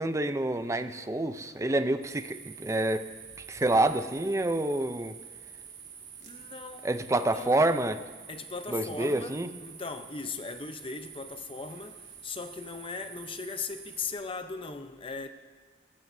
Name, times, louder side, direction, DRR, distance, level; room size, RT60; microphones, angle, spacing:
voice 1, 0.0-3.1 3.5-5.1 6.8-8.0 8.7-9.5, right 2 dB, 15° right, 0.5 m, -27 dB
sound 1, 2.0-14.1, right 7 dB, 90° right, 1.9 m, -48 dB
voice 2, 6.2-6.9 7.2-7.7 8.3-15.3, left 4 dB, 30° left, 0.7 m, -39 dB
20.5 x 15.0 x 2.7 m
head